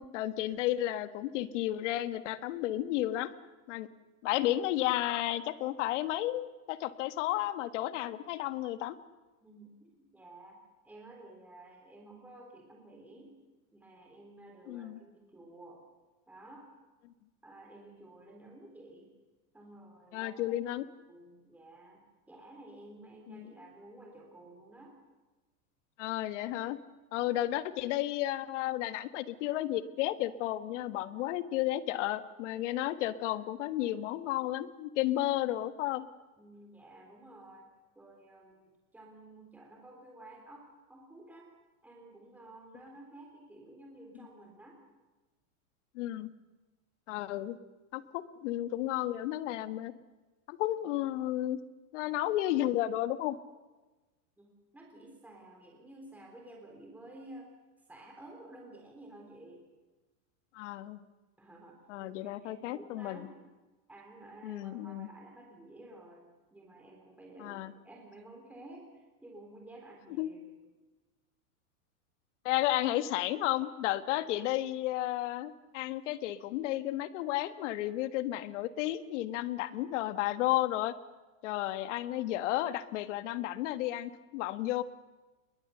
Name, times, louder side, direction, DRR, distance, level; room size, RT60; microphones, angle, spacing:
voice 1, 0.0-3.3 3.7-3.9 4.2-9.0 14.7-15.0 20.1-20.8 23.3-23.5 26.0-26.8 27.1-36.1 45.9-46.3 47.1-47.6 47.9-49.9 50.5-51.6 51.9-53.4 60.5-61.0 61.9-63.3 64.4-65.1 67.4-67.7 70.2-70.3 72.4-80.9 81.4-84.8, left 14 dB, 55° left, 11 dB, 1.6 m, -32 dB
voice 2, 9.4-13.3 13.7-15.8 16.3-16.7 17.4-19.1 19.5-20.3 21.1-25.0 27.1-27.3 36.4-37.7 38.0-41.5 41.8-44.8 54.4-57.5 57.9-59.6 61.4-63.4 63.9-66.3 66.5-70.5, right 1 dB, 5° right, 0 dB, 3.6 m, -52 dB
27.5 x 21.5 x 6.9 m, 1.2 s
supercardioid pair, 160°, 44 cm